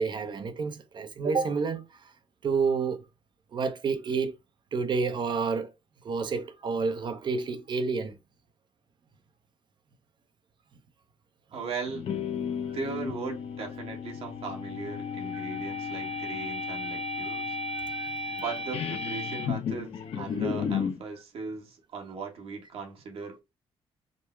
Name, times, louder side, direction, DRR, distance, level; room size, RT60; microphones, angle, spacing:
voice 1, 0.0-1.8 2.4-3.0 3.5-4.3 4.7-5.7 6.0-8.1 15.3-15.5 17.7-18.4, right 5 dB, 45° right, 0.8 m, -29 dB
voice 2, 11.5-12.3 12.7-17.5 18.3-23.4, right 4 dB, 65° right, 1.6 m, -38 dB
sound 1, 11.9-21.0, left 5 dB, 65° left, 0.8 m, -33 dB
5.2 x 2.1 x 4.5 m
cardioid pair, 115°, 11 cm